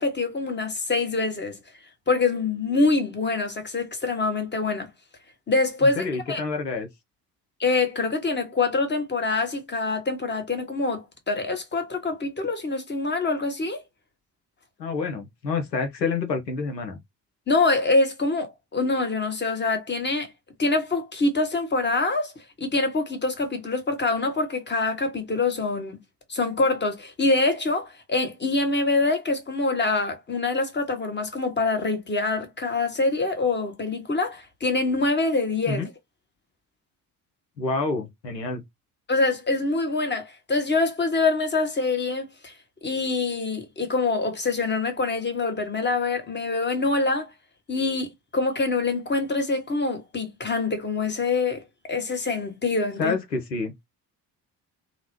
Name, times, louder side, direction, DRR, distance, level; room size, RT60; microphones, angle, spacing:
voice 1, 0.0-1.6 2.1-4.9 5.5-6.4 7.6-13.8 17.5-20.3 20.6-22.3 22.6-26.0 26.3-35.9 39.1-42.5 42.8-47.3 47.7-51.6 51.9-53.2, left 3 dB, 20° left, 1.0 m, -25 dB
voice 2, 5.8-6.9 14.8-17.0 35.7-35.9 37.6-38.6 53.0-53.7, left 4 dB, 90° left, 0.6 m, -28 dB
2.8 x 2.0 x 3.1 m
figure-of-eight pair, 45°, 49 cm